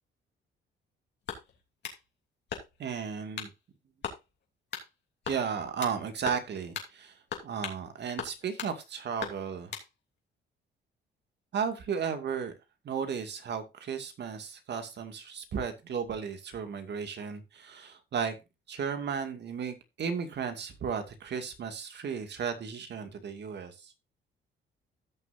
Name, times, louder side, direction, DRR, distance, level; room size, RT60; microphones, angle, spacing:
sound 1, 1.2-2.0 2.5-2.9 3.4-3.6 4.0-4.2 4.7-4.9 5.2-6.0 6.3-6.5 6.7-6.9 7.3-7.8 8.2-8.7 9.2-9.9, left 7 dB, 60° left, 3.0 m, -38 dB
voice 1, 2.8-3.5 5.3-9.7 11.5-12.5 12.8-18.4 18.7-23.9, right 6 dB, 60° right, 7 dB, 2.3 m, -34 dB
16.0 x 6.6 x 2.7 m, 0.25 s
cardioid pair, 90°, 20 cm